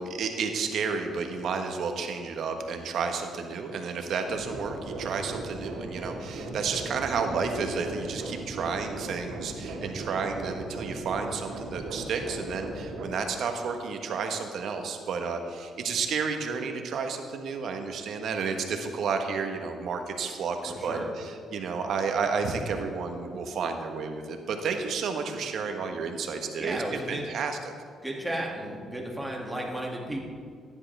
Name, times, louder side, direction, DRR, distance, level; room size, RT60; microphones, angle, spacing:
voice 1, 0.0-27.6, right 5 dB, 70° right, 5 dB, 1.3 m, -31 dB
sound 1, 4.2-13.1, right 2 dB, 90° right, 2.1 m, -38 dB
voice 2, 20.7-21.1 26.6-27.2 28.0-30.3, right 1 dB, 10° right, -2 dB, 2.3 m, -34 dB
14.5 x 10.5 x 3.5 m, 2.1 s
cardioid pair, 90°, 0 cm